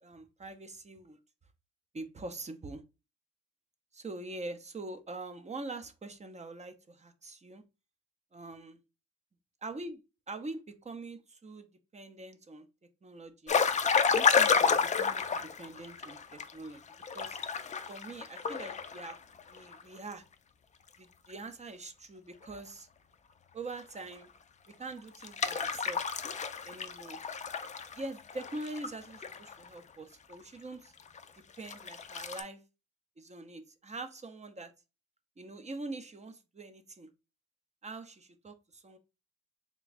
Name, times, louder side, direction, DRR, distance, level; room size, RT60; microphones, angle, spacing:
voice 1, 0.0-1.2 1.9-2.8 3.9-7.6 8.3-8.8 9.6-10.0 10.3-11.7 11.9-12.7 13.0-13.6 14.1-16.8 17.1-17.4 17.9-19.2 19.5-20.2 21.0-22.9 23.5-24.3 24.8-26.0 26.6-27.2 28.0-30.9 31.6-32.6 33.2-34.7 35.4-37.1 37.8-39.0, right 2 dB, 25° right, 0.6 m, -44 dB
sound 1, 13.5-16.5 16.9-19.8 20.1-20.2 23.8-23.9 25.2-29.7 30.3-30.4 31.2-31.3 31.7-32.4, left 6 dB, 25° left, 0.4 m, -30 dB
3.4 x 2.3 x 3.9 m
cardioid pair, 90°, 30 cm